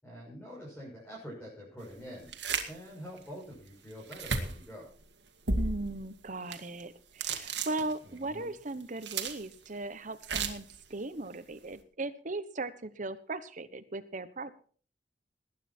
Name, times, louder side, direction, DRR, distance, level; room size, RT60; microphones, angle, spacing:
voice 1, 0.0-2.3 2.6-4.9 8.0-8.5, equal, 10° left, -5 dB, 6.7 m, -46 dB
sound 1, 2.3-2.8 3.2-3.3 4.1-4.7 5.5-6.0 6.5-6.8 7.2-8.2 8.8-9.7 10.2-10.8, right 4 dB, 80° right, 2.1 m, -33 dB
voice 2, 5.5-14.5, right 2 dB, 45° right, 12 dB, 1.1 m, -38 dB
20.0 x 9.4 x 4.5 m, 0.43 s
head